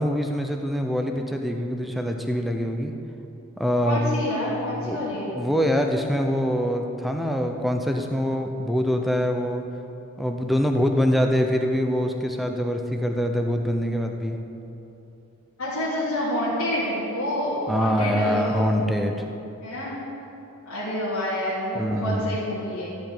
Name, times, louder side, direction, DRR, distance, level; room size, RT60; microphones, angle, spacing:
voice 1, 0.0-2.9 3.6-4.1 4.8-5.0 5.4-9.6 10.2-14.4 17.7-19.2 21.7-22.4, equal, ahead, 3 dB, 0.7 m, -24 dB
voice 2, 3.8-5.3 15.6-18.8 19.6-20.0 20.6-22.8, left 1 dB, 75° left, -10 dB, 3.0 m, -28 dB
14.0 x 5.2 x 8.8 m, 2.8 s
head